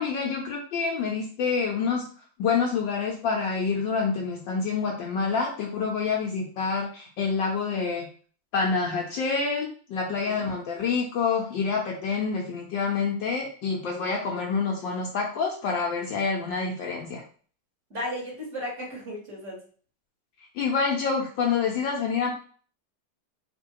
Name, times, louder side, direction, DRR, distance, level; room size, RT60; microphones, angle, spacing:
voice 1, 0.0-2.1 2.4-8.1 8.5-17.2 20.6-22.3, left 5 dB, 70° left, 0 dB, 1.2 m, -27 dB
voice 2, 10.1-10.4 17.9-19.6, left 1 dB, 35° right, -4 dB, 1.8 m, -35 dB
3.8 x 2.7 x 4.5 m, 0.43 s
omnidirectional pair, 2.4 m